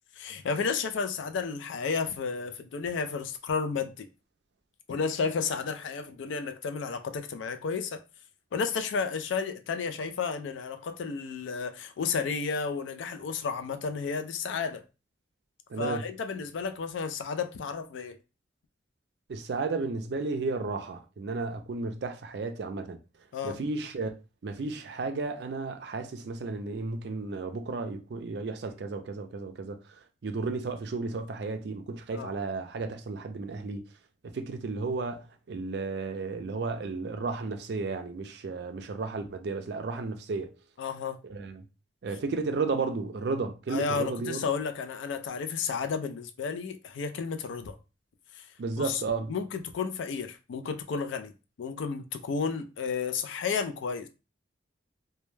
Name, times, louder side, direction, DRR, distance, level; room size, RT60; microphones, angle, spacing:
voice 1, 0.2-4.1 4.9-8.0 8.5-14.8 15.8-18.2 23.3-23.6 32.1-32.3 40.8-41.2 43.7-47.8 48.3-48.5 48.8-49.0 49.3-51.3 51.6-54.1, left 5 dB, 75° left, 0.3 m, -32 dB
voice 2, 15.7-16.1 19.3-23.0 23.4-24.1 24.4-29.8 30.2-33.8 34.2-40.5 41.3-41.6 42.0-44.5 48.6-49.3, right 3 dB, 60° right, 0.4 m, -33 dB
2.2 x 2.1 x 3.1 m
head